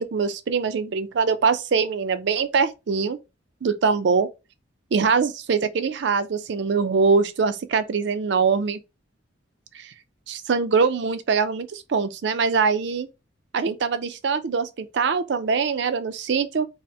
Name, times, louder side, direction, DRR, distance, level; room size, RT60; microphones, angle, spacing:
voice 1, 0.0-3.2 3.6-4.3 4.9-8.8 9.7-9.9 10.3-13.1 13.5-16.7, right 5 dB, 60° right, 0.4 m, -23 dB
4.1 x 2.0 x 3.3 m
head